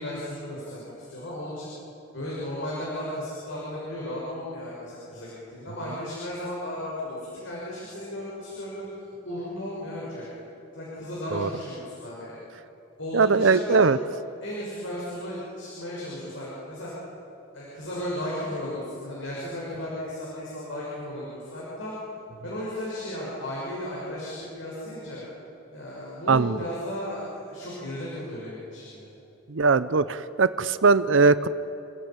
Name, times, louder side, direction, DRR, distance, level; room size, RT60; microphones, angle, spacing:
voice 1, 0.0-1.7 2.1-8.8 9.2-10.3 10.7-12.4 13.0-13.8 14.4-16.9 17.5-22.0 22.4-25.2 25.7-29.1, left 1 dB, 75° left, -6 dB, 6.0 m, -35 dB
voice 2, 13.1-14.0 26.3-26.6 29.5-31.5, right 4 dB, 75° right, 14 dB, 0.6 m, -20 dB
28.0 x 15.5 x 8.9 m, 3.0 s
head